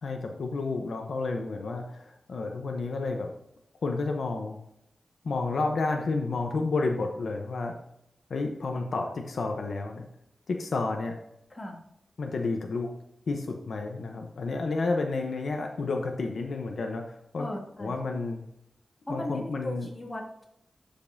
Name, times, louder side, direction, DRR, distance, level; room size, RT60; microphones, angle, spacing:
voice 1, 0.0-3.3 3.8-4.6 5.2-7.8 8.3-10.0 10.5-11.2 12.2-12.9 13.3-17.5 17.8-18.4 19.1-19.9, left 3 dB, 70° left, 3 dB, 0.8 m, -31 dB
voice 2, 17.4-17.9 19.1-20.4, left 1 dB, 20° left, 0 dB, 1.8 m, -37 dB
11.5 x 5.2 x 2.7 m, 0.78 s
wide cardioid pair, 105°, 0 cm